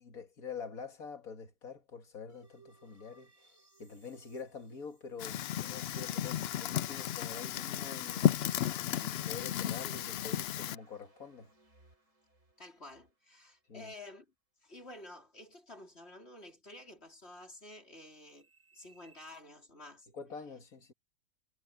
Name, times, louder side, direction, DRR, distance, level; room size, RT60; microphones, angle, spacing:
voice 1, 0.0-3.5 3.8-8.3 8.8-11.5 13.7-13.9 20.1-20.9, left 5 dB, 65° left, 2.5 m, -46 dB
sound 1, 2.3-6.2 6.6-6.7 10.3-14.0 18.0-19.4, right 3 dB, 50° right, 6.1 m, -67 dB
Fire, 5.2-10.8, left 11 dB, 85° left, 0.5 m, -33 dB
voice 2, 12.6-14.3 14.6-18.5 18.7-20.1, left 2 dB, 40° left, 4.5 m, -51 dB
omnidirectional pair, 1.6 m